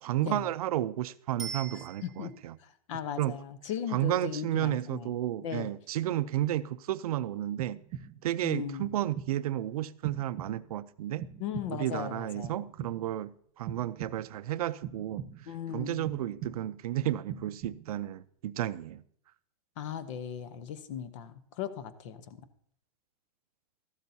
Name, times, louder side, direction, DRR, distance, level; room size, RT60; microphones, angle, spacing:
voice 1, 0.0-2.6 3.2-3.4 3.9-7.8 8.2-11.3 11.7-15.3 15.7-19.0, right 13 dB, 80° right, 0.5 m, -32 dB
Bicycle bell, 1.4-2.5 11.6-11.7, right 5 dB, ahead, 1.6 m, -42 dB
voice 2, 1.7-2.3 2.6-5.1 5.4-5.7 8.4-8.9 11.4-12.6 15.5-16.2 19.8-22.4, left 8 dB, 55° left, 0.9 m, -38 dB
sound 1, 7.6-8.4 8.8-9.5 10.0-10.8 11.2-12.0 12.4-13.2 13.7-14.5 14.8-15.6 16.1-16.9 17.3-18.1, right 9 dB, 40° right, 0.8 m, -43 dB
13.0 x 12.0 x 2.7 m
supercardioid pair, 150°, 19 cm